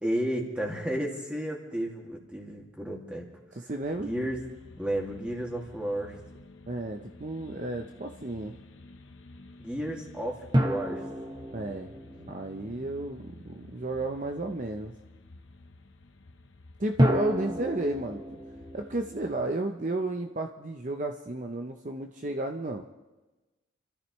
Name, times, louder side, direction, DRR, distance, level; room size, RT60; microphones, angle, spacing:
voice 1, 0.0-3.3 4.0-4.4 4.8-6.1 9.6-11.0, right 1 dB, 5° right, -1 dB, 2.3 m, -32 dB
voice 2, 3.5-4.1 6.7-8.5 11.5-11.9 12.2-14.9 16.8-18.4 18.7-22.9, right 2 dB, 40° right, 4 dB, 0.7 m, -32 dB
sound 1, 3.8-19.5, left 2 dB, 75° left, 1.0 m, -51 dB
sound 2, 10.5-13.4 17.0-20.3, equal, 20° right, 1.1 m, -31 dB
29.5 x 13.5 x 3.2 m, 1.1 s
head